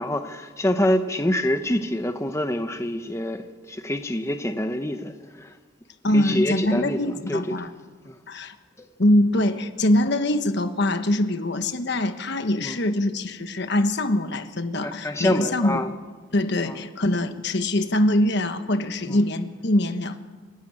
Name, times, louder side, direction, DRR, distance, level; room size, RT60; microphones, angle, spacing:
voice 1, 0.0-5.5 6.1-7.6 8.0-8.2 12.6-12.8 14.8-15.9 16.6-16.8 19.1-19.2, left 1 dB, 15° left, 0.8 m, -26 dB
voice 2, 6.0-7.7 8.3-8.6 9.0-15.8 16.3-20.2, left 1 dB, 60° left, 1.3 m, -23 dB
29.0 x 12.0 x 8.8 m
head